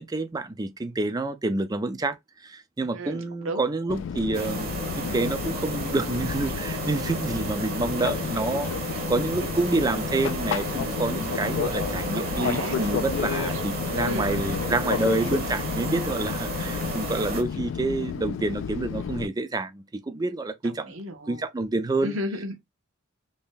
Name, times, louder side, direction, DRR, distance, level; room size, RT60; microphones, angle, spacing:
voice 1, 0.0-2.2 2.4-4.7 5.0-8.7 9.1-20.9 21.3-22.2, right 2 dB, 20° right, 0.4 m, -28 dB
voice 2, 2.9-3.6 10.4-10.5 12.1-13.2 14.1-14.5 20.6-21.4 22.0-22.6, equal, 75° right, 1.0 m, -34 dB
Fixed-wing aircraft airplane, 3.9-19.3, left 6 dB, 65° left, 0.3 m, -31 dB
sound 1, 4.3-17.4, right 3 dB, 45° right, 1.0 m, -33 dB
3.2 x 2.8 x 3.5 m
head